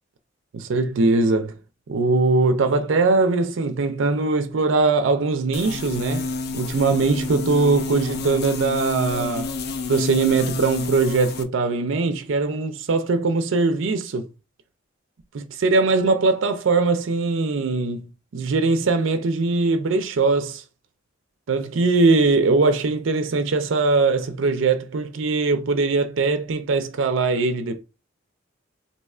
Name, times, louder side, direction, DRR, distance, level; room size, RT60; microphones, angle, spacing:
voice 1, 0.5-1.5 1.9-9.5 9.9-14.3 15.3-20.6 21.5-27.8, right 3 dB, 75° right, 0.4 m, -21 dB
sound 1, 5.5-11.4, left 4 dB, 55° left, 0.4 m, -30 dB
2.7 x 2.3 x 4.2 m
head